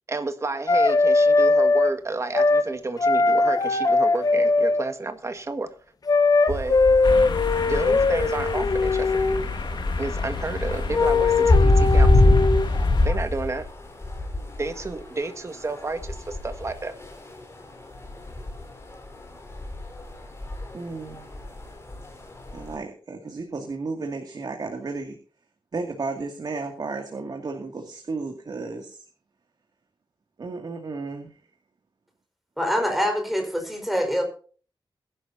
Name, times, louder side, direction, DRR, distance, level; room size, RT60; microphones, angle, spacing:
voice 1, 0.1-5.7 6.5-6.8 7.6-9.3 10.0-12.1 13.0-13.7 14.6-16.9, right 3 dB, 35° right, 8 dB, 1.7 m, -31 dB
sound 1, 0.7-1.9 2.3-2.7 3.0-4.9 6.1-9.5 10.9-12.7, left 3 dB, 45° left, 1.4 m, -20 dB
sound 2, 6.5-22.7, left 2 dB, 30° left, 4.2 m, -25 dB
sound 3, 7.0-13.1, left 4 dB, 65° left, 2.5 m, -30 dB
voice 2, 20.7-21.3 22.5-25.2 25.7-29.0 30.4-31.3, right 3 dB, 55° right, 3 dB, 2.3 m, -33 dB
voice 3, 32.6-34.2, equal, ahead, 3 dB, 4.5 m, -25 dB
22.0 x 11.0 x 2.8 m, 0.41 s
wide cardioid pair, 150°, 9 cm